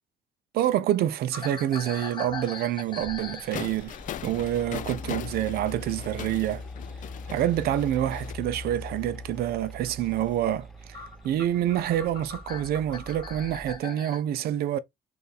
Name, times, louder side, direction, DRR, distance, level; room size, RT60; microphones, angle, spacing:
voice 1, 0.5-4.0 4.2-6.6 7.3-14.8, right 12 dB, 65° right, 0.5 m, -27 dB
sound 1, 1.3-6.1 6.4-8.5 9.0-9.4 9.9-10.0 10.6-10.7 10.9-14.2, left 4 dB, 30° left, 1.0 m, -42 dB
Mechanical fan, 2.5-13.8, left 2 dB, ahead, 0.6 m, -42 dB
sound 2, 3.5-8.3, left 11 dB, 50° left, 0.4 m, -40 dB
4.0 x 2.5 x 4.0 m
cardioid pair, 110°, 17 cm